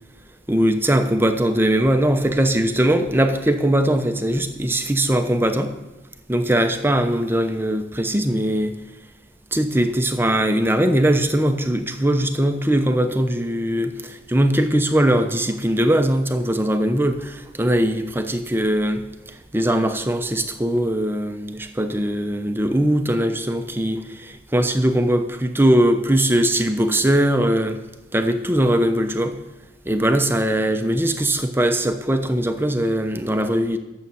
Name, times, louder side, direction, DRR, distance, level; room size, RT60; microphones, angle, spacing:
voice 1, 0.5-5.7 6.3-8.7 9.5-19.0 19.5-27.8 28.1-29.4 29.9-33.8, right 1 dB, 10° right, 7 dB, 0.8 m, -20 dB
12.0 x 7.7 x 7.0 m, 1.0 s
head